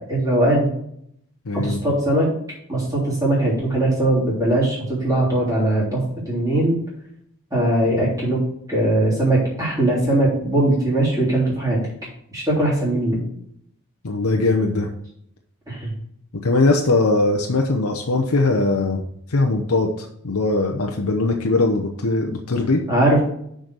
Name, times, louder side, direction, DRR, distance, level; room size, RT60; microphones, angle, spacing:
voice 1, 0.1-0.7 1.6-2.3 2.7-6.0 6.3-6.7 7.5-8.4 8.7-11.8 12.3-13.2 15.7-15.9 22.9-23.2, right 1 dB, 15° right, -6 dB, 3.3 m, -20 dB
voice 2, 1.5-1.8 14.0-14.9 16.4-19.0 19.3-22.8, left 2 dB, 85° left, 2 dB, 0.9 m, -20 dB
6.5 x 5.2 x 6.2 m, 0.70 s
head